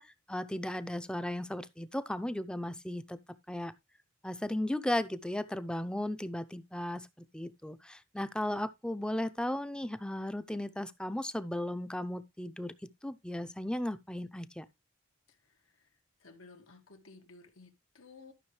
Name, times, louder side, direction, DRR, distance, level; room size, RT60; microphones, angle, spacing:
voice 1, 0.0-3.2 3.5-3.7 4.2-7.1 7.3-14.7, left 1 dB, 5° left, 0.6 m, -36 dB
voice 2, 15.3-18.3, left 3 dB, 80° left, 2.0 m, -56 dB
13.0 x 6.2 x 3.2 m
head